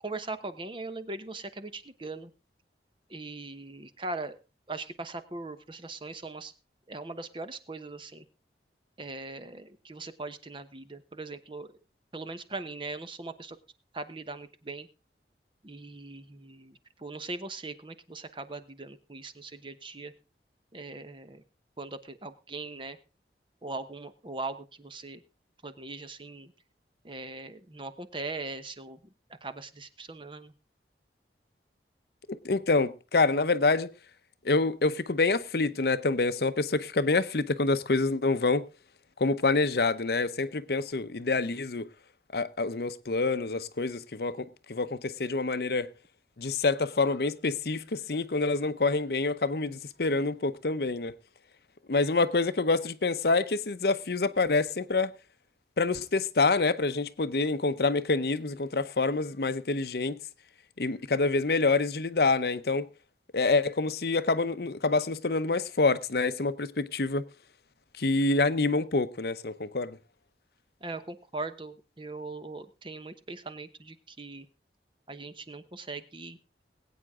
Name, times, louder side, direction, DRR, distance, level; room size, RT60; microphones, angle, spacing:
voice 1, 0.0-2.3 3.1-4.4 4.7-6.5 6.9-8.2 9.0-11.8 12.1-13.6 13.9-14.9 15.6-20.1 20.7-21.4 21.8-23.0 23.6-25.2 25.6-26.5 27.0-29.0 29.4-30.5 70.8-74.5 75.1-76.4, right 3 dB, 30° right, 1.0 m, -40 dB
voice 2, 32.3-33.9 34.4-38.6 39.2-41.9 42.3-45.9 46.4-51.1 51.9-55.1 55.8-60.2 60.8-62.9 63.3-67.3 68.0-70.0, left 3 dB, 60° left, 0.8 m, -27 dB
21.0 x 8.9 x 3.7 m
head